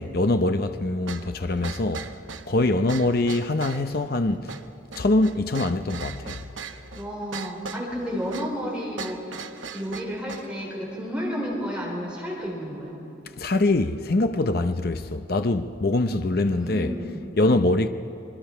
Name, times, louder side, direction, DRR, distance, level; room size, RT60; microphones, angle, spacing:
voice 1, 0.0-2.1 2.5-4.6 5.0-6.4 13.4-16.9 17.4-17.9, left 2 dB, 50° left, 0.7 m, -23 dB
sound 1, 1.1-10.5, right 5 dB, 80° right, 1.0 m, -39 dB
voice 2, 6.9-9.4 9.7-13.0 16.4-17.2, equal, 5° right, 4.0 m, -31 dB
27.5 x 21.5 x 5.7 m
head